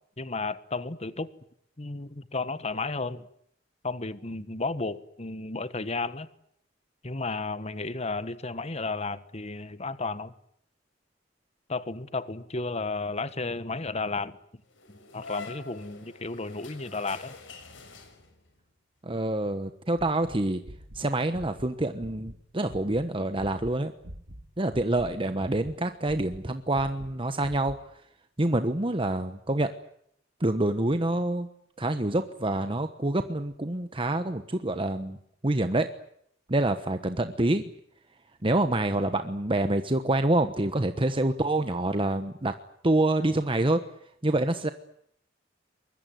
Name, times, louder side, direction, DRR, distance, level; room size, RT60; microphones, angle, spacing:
voice 1, 0.2-1.3 1.8-3.2 3.8-6.3 7.0-10.3 11.7-14.4 15.1-17.3, left 3 dB, 35° left, 1.4 m, -33 dB
sound 1, 14.7-18.6, left 4 dB, 90° left, 6.2 m, -45 dB
voice 2, 19.0-20.6 20.9-23.9 24.6-27.7 28.4-29.7 30.4-31.5 31.8-35.2 35.4-35.9 36.5-37.6 38.4-42.5 42.8-43.8 44.2-44.7, right 2 dB, 30° right, 1.2 m, -26 dB
sound 2, 20.0-22.4 22.7-23.1 23.3-24.4 24.7-25.8 26.0-27.8, equal, 75° right, 3.4 m, -45 dB
23.5 x 21.5 x 9.3 m
head